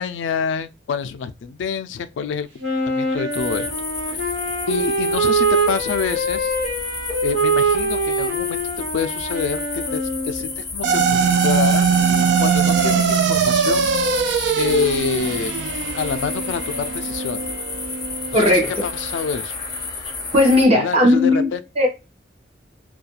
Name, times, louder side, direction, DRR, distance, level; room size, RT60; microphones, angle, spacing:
voice 1, 0.0-2.5 2.9-3.7 4.1-4.2 4.7-6.5 7.2-8.6 8.9-11.1 11.4-11.9 12.4-13.9 14.6-15.6 15.9-17.5 18.3-19.6 20.7-21.6, left 6 dB, 85° left, 0.3 m, -26 dB
Wind instrument woodwind instrument, 2.6-10.6, right 3 dB, 90° right, 1.2 m, -23 dB
sound 1, 3.3-20.7, left 4 dB, 25° left, 0.5 m, -31 dB
sound 2, 10.8-19.3, right 6 dB, 70° right, 0.3 m, -21 dB
voice 2, 18.3-18.7 20.3-21.5 21.8-21.9, left 1 dB, 35° right, 0.7 m, -15 dB
2.4 x 2.2 x 2.8 m
head